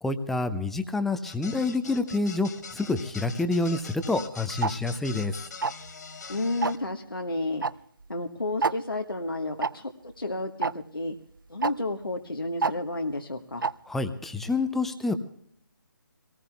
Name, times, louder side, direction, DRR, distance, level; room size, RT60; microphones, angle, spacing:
voice 1, 0.0-5.3 13.9-15.2, left 3 dB, ahead, 10 dB, 0.5 m, -28 dB
sound 1, 1.2-6.8, left 5 dB, 50° left, 1.4 m, -43 dB
Tick-tock, 4.6-4.7 5.6-5.9 6.6-6.9 7.6-7.7 8.0-8.1 8.6-8.7 9.6-9.7 10.6-10.7 11.6-11.7 12.6-12.7 13.6-13.7, right 4 dB, 70° right, 0.5 m, -25 dB
voice 2, 6.3-7.6 8.1-9.9 10.2-11.1 11.5-13.7, left 2 dB, 85° left, 3 dB, 1.3 m, -31 dB
24.0 x 18.5 x 2.2 m, 0.67 s
figure-of-eight pair, 145°, 11 cm